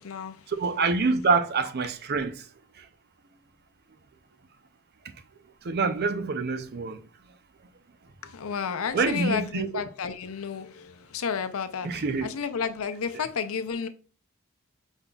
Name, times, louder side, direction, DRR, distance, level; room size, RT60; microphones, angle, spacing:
voice 1, 0.0-0.5 8.2-13.9, left 6 dB, 85° left, 0.6 m, -32 dB
voice 2, 0.6-2.3 5.6-7.0 8.9-9.7 11.8-12.3, right 4 dB, 50° right, 0.5 m, -26 dB
5.3 x 3.8 x 2.3 m
head